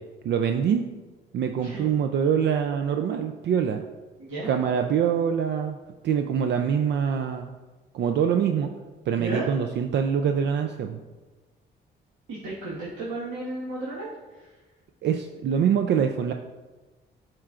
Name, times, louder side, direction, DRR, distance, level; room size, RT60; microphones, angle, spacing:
voice 1, 0.2-0.8 1.3-3.8 4.5-5.8 6.0-7.5 7.9-8.7 9.1-11.0 15.0-16.3, right 7 dB, 60° right, 6 dB, 0.4 m, -24 dB
voice 2, 4.2-4.5 9.2-9.5 12.3-14.5, right 2 dB, 85° right, -8 dB, 1.6 m, -34 dB
10.5 x 4.5 x 2.5 m, 1.2 s
cardioid pair, 90°, 20 cm